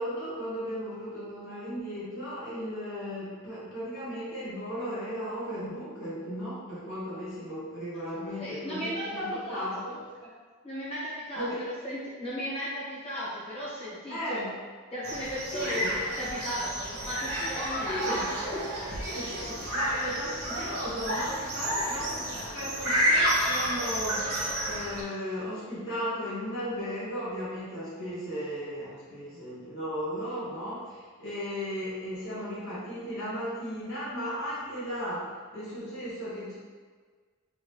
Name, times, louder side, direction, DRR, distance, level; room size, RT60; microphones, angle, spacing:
voice 1, 0.0-9.9 11.4-11.6 14.1-14.5 15.5-15.9 17.9-18.3 18.9-36.6, equal, 60° left, -10 dB, 1.1 m, -36 dB
voice 2, 8.3-9.7 10.6-11.4 11.8-14.4 14.9-18.2 18.8-18.9, equal, 25° left, -10 dB, 1.4 m, -36 dB
sound 1, 15.0-25.0, equal, 65° right, 1.2 m, -30 dB
3.5 x 2.7 x 3.4 m, 1.5 s
head